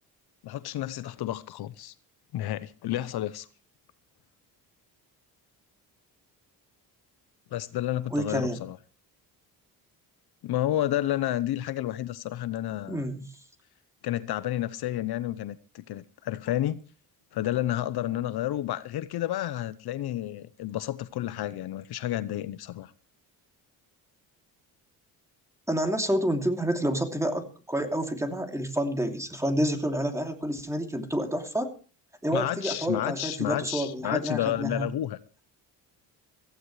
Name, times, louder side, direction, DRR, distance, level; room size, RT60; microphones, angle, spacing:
voice 1, 0.4-1.9 2.3-3.5 7.5-8.8 10.4-13.1 14.0-16.9 17.3-22.9 32.3-35.2, left 13 dB, 65° left, 0.9 m, -30 dB
voice 2, 8.1-8.6 12.9-13.3 25.7-31.7 32.2-34.9, equal, 5° right, 3.0 m, -29 dB
17.5 x 15.0 x 3.3 m
cardioid pair, 90°, 40 cm